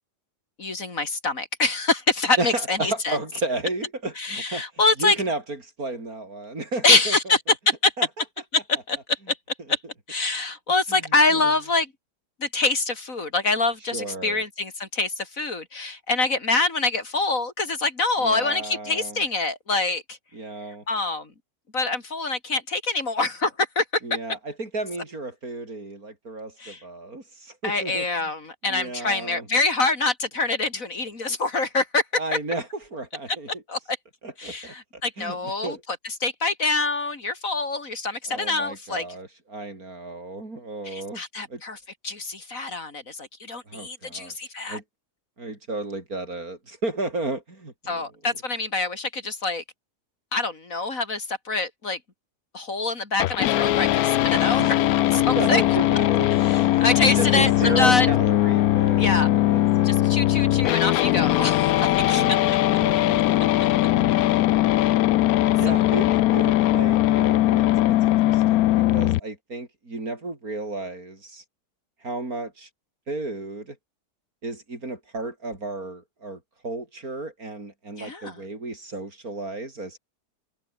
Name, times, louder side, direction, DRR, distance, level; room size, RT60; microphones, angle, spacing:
voice 1, 0.6-3.2 4.2-5.2 6.8-7.4 7.7-7.9 8.5-9.4 9.7-9.8 10.1-11.9 12.4-20.2 20.9-21.3 21.7-24.0 26.6-26.8 27.6-32.0 33.7-34.0 34.4-35.8 36.0-39.1 40.9-41.8 42.0-44.8 47.9-49.6 50.3-52.0 52.5-54.6 55.1-55.6 56.4-58.1 59.0-59.3 59.8-62.2 65.7-65.8 78.0-78.4, left 3 dB, 55° left, 3.6 m, -25 dB
voice 2, 2.4-4.6 5.0-7.3 8.0-8.1 10.9-11.5 13.9-14.4 18.2-19.2 20.3-20.8 24.0-28.3 28.7-29.5 32.2-33.6 34.2-35.8 38.3-41.2 41.5-41.6 43.7-44.3 44.7-44.8 45.4-48.1 54.6-54.7 55.4-56.4 56.7-60.4 62.1-64.1 64.9-65.2 65.6-71.4 72.0-72.7 73.1-73.8 74.4-80.0, right 2 dB, 60° right, 5.6 m, -33 dB
sound 1, 53.2-69.2, left 15 dB, 70° left, 1.0 m, -20 dB
omnidirectional pair, 1.7 m